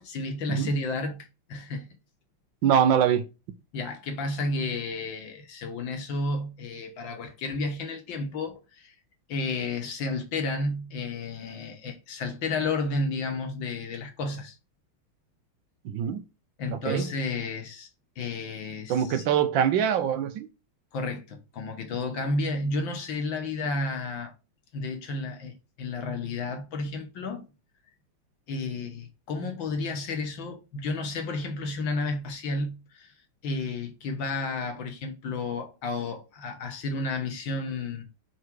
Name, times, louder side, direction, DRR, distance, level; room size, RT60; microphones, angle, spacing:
voice 1, 0.0-1.9 3.7-8.9 9.3-14.5 16.6-17.9 18.2-19.2 20.9-24.3 24.7-27.5 28.5-33.1 33.4-38.0, left 3 dB, 65° left, 1.8 m, -32 dB
voice 2, 2.6-3.2 15.8-16.2 16.9-17.0 18.9-20.5, right 8 dB, 70° right, 1.4 m, -23 dB
4.8 x 4.7 x 4.6 m
omnidirectional pair, 2.3 m